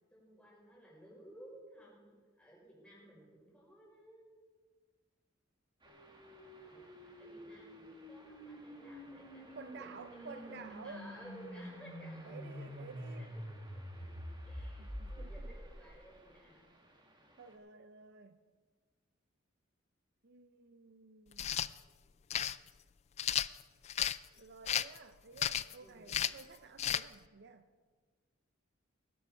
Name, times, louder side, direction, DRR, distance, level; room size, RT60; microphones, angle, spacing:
voice 1, 0.1-4.3 6.6-14.2 14.5-16.8 25.8-26.1, right 1 dB, 5° left, -5 dB, 5.6 m, -56 dB
sound 1, 5.8-17.6, right 1 dB, 25° right, 2.0 m, -61 dB
sound 2, 5.9-15.9, equal, 85° left, 4.2 m, -48 dB
voice 2, 9.5-11.1 12.2-13.3 14.8-15.5 17.4-18.4 20.2-21.7 24.4-27.6, right 4 dB, 55° right, 9 dB, 0.6 m, -52 dB
sound 3, 21.3-21.7 22.3-22.6 23.2-24.2 24.7-25.0 25.4-25.7 26.1-26.4 26.8-27.0, left 10 dB, 35° left, 0.3 m, -33 dB
19.5 x 11.0 x 4.5 m, 1.5 s
head